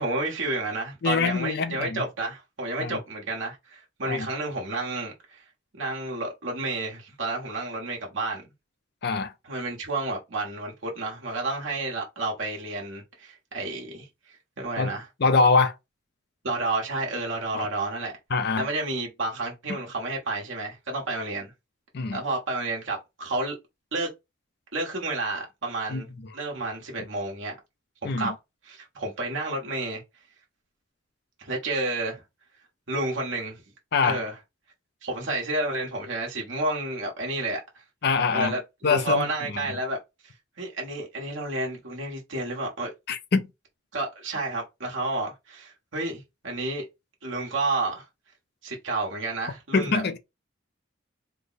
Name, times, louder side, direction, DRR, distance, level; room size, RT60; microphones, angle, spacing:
voice 1, 0.0-5.4 5.7-8.4 9.4-14.1 14.6-15.1 16.4-18.1 18.6-21.5 22.1-23.6 23.9-24.1 24.7-26.1 26.3-27.6 28.0-28.3 28.6-30.0 31.4-32.2 32.9-33.6 34.0-34.3 35.0-37.6 38.3-40.0 40.6-42.9 43.9-46.8 47.2-48.1 48.6-50.0, right 2 dB, 70° right, 1.3 m, -30 dB
voice 2, 1.0-2.0 2.8-3.0 4.1-4.3 9.0-9.3 14.8-14.9 15.2-15.7 17.5-17.7 18.3-18.7 21.9-22.2 25.9-26.0 28.0-28.3 33.9-34.2 38.0-38.6 38.8-39.3 43.1-43.5 49.7-50.2, left 4 dB, 55° left, 0.5 m, -24 dB
3.3 x 2.2 x 4.0 m
head